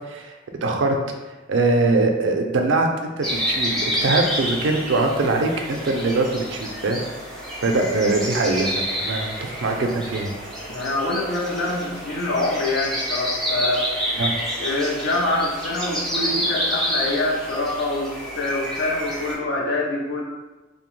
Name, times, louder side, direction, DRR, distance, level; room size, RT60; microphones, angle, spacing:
voice 1, 0.6-1.0 1.5-7.0 7.6-10.3 14.2-14.3, right 3 dB, 65° right, 3 dB, 0.4 m, -22 dB
sound 1, 3.2-19.4, equal, ahead, 0.6 m, -28 dB
voice 2, 10.7-13.9 14.6-20.2, left 2 dB, 65° left, -2 dB, 0.6 m, -25 dB
2.8 x 2.1 x 3.1 m, 1.1 s
head